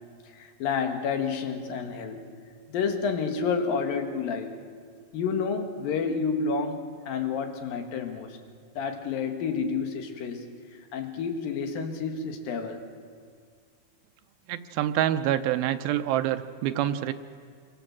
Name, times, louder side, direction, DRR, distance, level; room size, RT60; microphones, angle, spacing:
voice 1, 0.3-2.3 2.7-4.6 5.1-8.4 8.8-10.5 10.7-12.9, left 5 dB, 75° left, 5 dB, 3.4 m, -30 dB
voice 2, 14.5-17.1, right 12 dB, 85° right, 9 dB, 2.6 m, -26 dB
27.5 x 23.0 x 7.3 m, 2.1 s
omnidirectional pair, 4.2 m